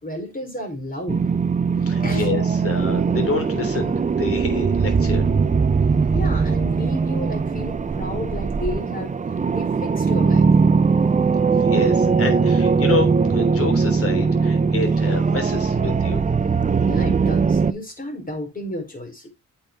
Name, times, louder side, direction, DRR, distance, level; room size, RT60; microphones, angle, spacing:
voice 1, 0.0-1.2 2.0-2.3 6.1-9.1 9.5-10.5 16.8-19.3, left 1 dB, 25° left, 4.6 m, -32 dB
sound 1, 1.1-17.7, right 5 dB, 25° right, 0.6 m, -20 dB
voice 2, 1.8-5.3 11.6-16.2, left 4 dB, 45° left, 3.5 m, -28 dB
8.5 x 5.8 x 4.5 m
cardioid pair, 110°, 32 cm